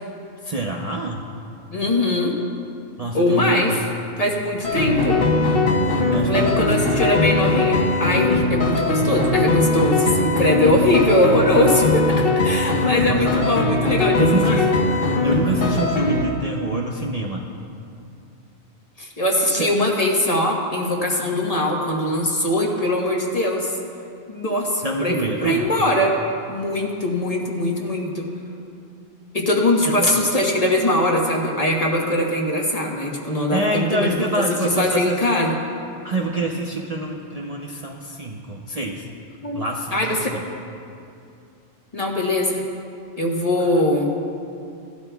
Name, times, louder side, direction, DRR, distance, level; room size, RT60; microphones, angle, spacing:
voice 1, 0.4-1.2 3.0-3.8 6.1-7.0 12.7-13.5 14.2-14.7 15.2-17.5 19.6-19.7 24.8-25.7 29.9-30.1 33.5-35.2 36.0-39.1 39.5-40.2 43.6-43.9, right 2 dB, 40° right, -1 dB, 0.7 m, -26 dB
voice 2, 1.7-2.4 3.1-3.8 4.2-5.2 6.2-14.7 19.0-23.8 24.3-26.1 26.5-28.3 29.3-34.3 34.8-35.6 39.4-39.6 39.9-40.3 41.9-42.6 43.2-44.2, left 1 dB, 35° left, -1 dB, 1.3 m, -21 dB
sound 1, 4.6-16.2, left 3 dB, 55° left, 1.4 m, -20 dB
17.0 x 12.5 x 2.3 m, 2.5 s
omnidirectional pair, 1.2 m